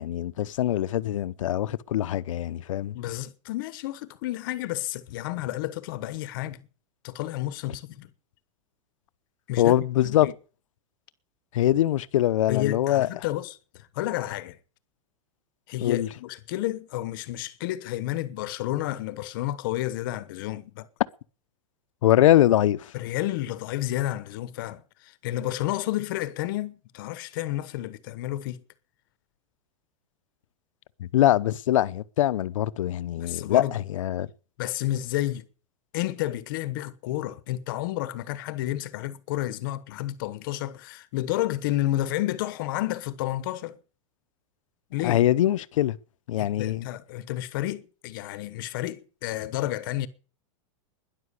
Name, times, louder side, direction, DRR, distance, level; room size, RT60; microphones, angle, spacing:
voice 1, 0.0-3.0 9.6-10.3 11.5-13.1 15.8-16.1 22.0-22.8 31.0-34.3 45.0-46.0 46.3-46.9, left 13 dB, 70° left, 0.8 m, -23 dB
voice 2, 2.9-6.6 7.0-8.1 9.5-9.7 10.0-10.3 12.5-14.6 15.7-20.9 22.9-28.6 33.2-33.8 34.6-35.4 35.9-43.8 44.9-45.2 46.4-50.1, left 15 dB, 40° left, 1.1 m, -31 dB
12.5 x 10.5 x 8.3 m
supercardioid pair, 180°, 17 cm